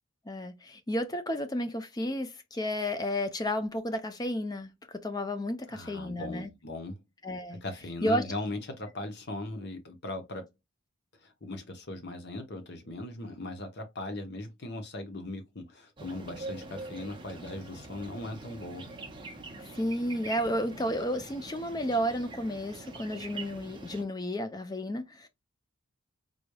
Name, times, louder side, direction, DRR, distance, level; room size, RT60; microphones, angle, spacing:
voice 1, 0.3-6.5 7.2-7.6 8.0-8.2 19.8-25.3, equal, 20° left, 0.4 m, -32 dB
voice 2, 5.7-7.0 7.6-10.5 11.2-18.9, left 2 dB, 50° left, 1.0 m, -39 dB
sound 1, 16.0-24.0, right 3 dB, 20° right, 0.6 m, -44 dB
3.9 x 3.2 x 2.2 m
head